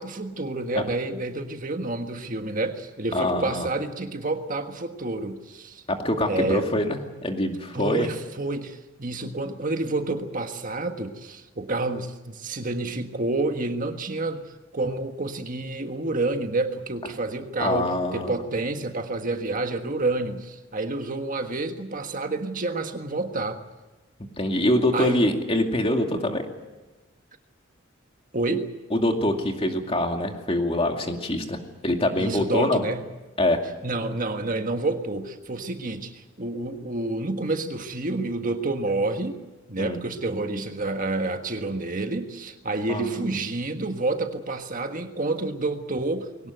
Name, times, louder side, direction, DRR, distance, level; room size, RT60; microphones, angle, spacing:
voice 1, 0.0-5.8 6.2-6.7 7.7-23.6 24.9-25.2 28.3-28.7 32.2-33.1 33.8-39.4 39.7-46.5, right 2 dB, 40° right, 6 dB, 1.6 m, -29 dB
voice 2, 3.1-3.7 5.9-8.1 17.6-18.3 24.4-26.4 28.9-32.8 33.4-33.6 39.8-40.0 42.9-43.4, left 1 dB, 30° left, 4 dB, 2.4 m, -24 dB
22.0 x 18.0 x 9.4 m, 1.1 s
head